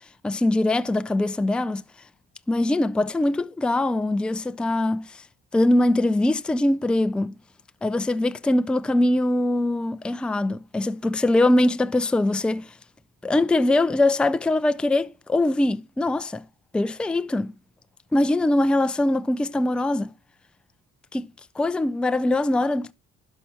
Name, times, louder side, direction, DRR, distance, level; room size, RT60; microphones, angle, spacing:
voice 1, 0.2-1.8 2.5-5.2 5.5-7.3 7.8-12.7 13.2-16.4 16.7-17.5 18.1-20.1 21.1-21.3 21.6-22.9, left 1 dB, 5° left, 0.4 m, -22 dB
11.5 x 5.5 x 3.2 m
cardioid pair, 90°, 30 cm